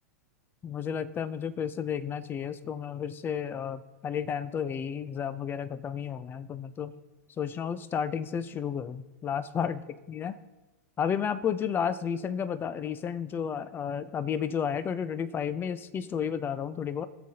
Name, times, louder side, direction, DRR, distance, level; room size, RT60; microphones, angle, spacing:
voice 1, 0.6-6.9 7.4-9.8 10.1-10.4 11.0-17.1, left 7 dB, 25° left, 15 dB, 0.6 m, -32 dB
22.0 x 7.6 x 2.9 m, 1.2 s
hypercardioid pair, 110°, 9 cm